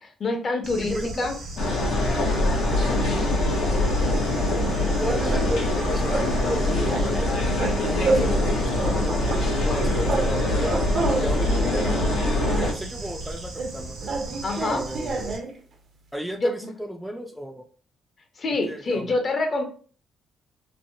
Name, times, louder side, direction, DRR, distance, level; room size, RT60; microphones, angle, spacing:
voice 1, 0.0-1.3 14.4-14.8 16.4-16.5 18.4-19.6, left 2 dB, 45° left, 4 dB, 0.7 m, -26 dB
Bird / Insect, 0.6-15.4, right 1 dB, 70° right, 1.2 m, -37 dB
voice 2, 0.8-1.3 5.0-7.5 7.9-10.8 11.2-12.0 12.4-14.0 14.7-15.4 16.1-17.6 18.7-19.1, equal, 5° right, 4 dB, 0.3 m, -33 dB
sound 1, 1.6-12.7, left 1 dB, 85° left, 0.8 m, -23 dB
sound 2, 4.4-5.8 6.1-6.3 6.6-8.5 8.8-10.3 10.6-12.8 13.6-15.6, right 3 dB, 55° right, 0.6 m, -29 dB
3.1 x 2.1 x 2.7 m, 0.43 s
cardioid pair, 90°, 0 cm